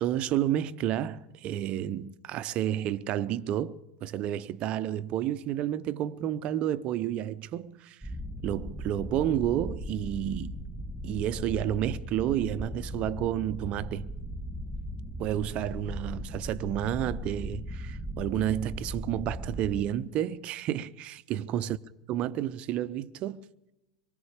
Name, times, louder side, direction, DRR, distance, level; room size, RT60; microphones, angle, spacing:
voice 1, 0.0-8.1 8.4-10.6 11.0-14.1 15.2-21.8 22.1-23.4, right 11 dB, 35° right, 0.7 m, -30 dB
sound 1, 8.0-19.9, equal, 5° left, 2.3 m, -38 dB
25.5 x 23.0 x 5.0 m
figure-of-eight pair, 90°, 3 cm